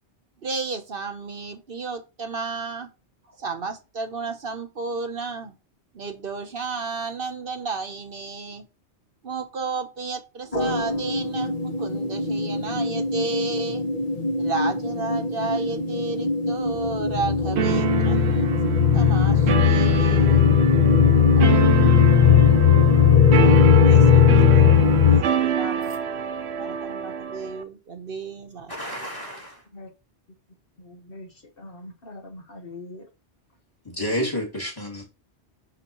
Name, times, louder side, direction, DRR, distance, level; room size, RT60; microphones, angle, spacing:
voice 1, 0.4-2.9 3.3-5.5 5.9-8.6 9.2-13.9 14.4-18.5 18.9-20.5 21.4-22.4 23.0-23.5 23.9-24.7 25.1-26.0 26.6-28.7, right 4 dB, 55° right, 1.1 m, -33 dB
sound 1, 10.5-25.2, left 7 dB, 35° left, 1.2 m, -18 dB
sound 2, 17.6-27.6, right 8 dB, 75° right, 1.0 m, -27 dB
voice 2, 28.7-29.6 33.9-35.0, equal, 20° left, 2.4 m, -30 dB
voice 3, 30.8-33.1, left 2 dB, 55° left, 1.4 m, -42 dB
9.9 x 3.9 x 3.0 m
omnidirectional pair, 1.1 m